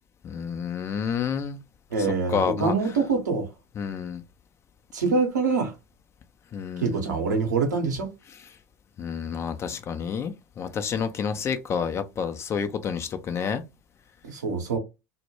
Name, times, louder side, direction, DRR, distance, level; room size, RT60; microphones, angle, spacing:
voice 1, 0.2-1.6 2.3-2.7 3.8-4.2 6.5-7.0 9.0-13.6, left 6 dB, 25° left, 0.4 m, -29 dB
voice 2, 1.9-3.5 4.9-5.7 6.8-8.1 14.2-14.8, right 4 dB, 70° right, 0.7 m, -25 dB
2.1 x 2.0 x 3.0 m
figure-of-eight pair, 75°, 10 cm